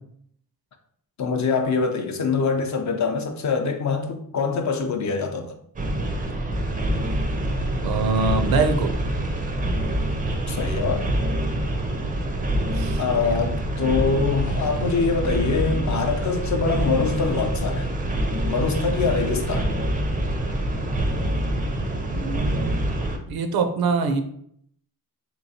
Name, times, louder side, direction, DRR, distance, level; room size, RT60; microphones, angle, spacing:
voice 1, 1.2-5.5 10.5-11.1 13.0-17.9 18.5-19.7, left 4 dB, 50° left, 0.5 m, -24 dB
sound 1, 5.8-23.2, right 1 dB, 25° right, 0.4 m, -25 dB
voice 2, 7.8-8.9 12.7-13.4 22.1-22.8 23.3-24.2, right 4 dB, 80° right, 0.5 m, -24 dB
3.4 x 3.0 x 2.7 m
wide cardioid pair, 130°, 36 cm